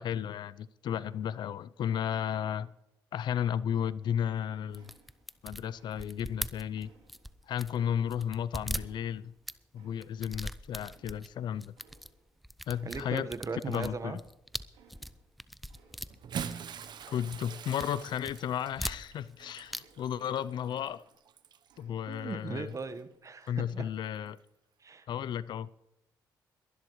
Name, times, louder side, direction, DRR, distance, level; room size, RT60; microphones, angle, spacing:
voice 1, 0.0-2.7 3.1-4.9 5.4-6.9 7.5-9.3 9.7-11.7 12.7-13.3 13.7-14.1 17.1-21.0 21.8-22.7 23.5-24.4 25.1-25.7, left 9 dB, 65° left, 0.5 m, -33 dB
sound 1, 4.7-7.8 8.1-9.6 10.0-11.3 11.6-12.1 12.4-17.0 17.3-17.9 18.2-19.4 19.7-19.8 20.1-20.2, equal, ahead, 0.7 m, -40 dB
sound 2, 4.7-5.5 5.7-6.4 6.7-8.4 8.7-10.4 10.7-12.4 12.7-13.4 13.7-14.4 14.7-15.3 15.7-16.3 16.7-20.3 20.7-22.3 22.7-23.3, right 5 dB, 85° right, 3.8 m, -64 dB
voice 2, 12.8-14.2 22.1-23.9 24.8-25.1, right 4 dB, 40° right, 1.3 m, -38 dB
Bathtub (filling or washing) / Splash splatter, 16.1-21.8 22.7-22.9 24.3-24.4, right 8 dB, 65° right, 0.9 m, -44 dB
22.0 x 11.5 x 3.2 m
supercardioid pair, 55°, 8 cm